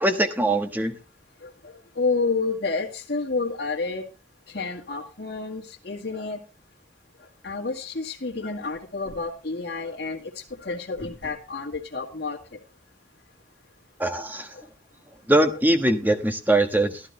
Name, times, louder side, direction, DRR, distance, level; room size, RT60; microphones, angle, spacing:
voice 1, 0.0-1.0 14.0-14.5 15.3-17.0, right 1 dB, 10° right, 7 dB, 1.3 m, -22 dB
voice 2, 1.4-4.1 4.5-6.4 7.4-12.4 14.5-14.6, left 3 dB, 60° left, -1 dB, 1.8 m, -30 dB
14.0 x 12.0 x 3.3 m, 0.30 s
head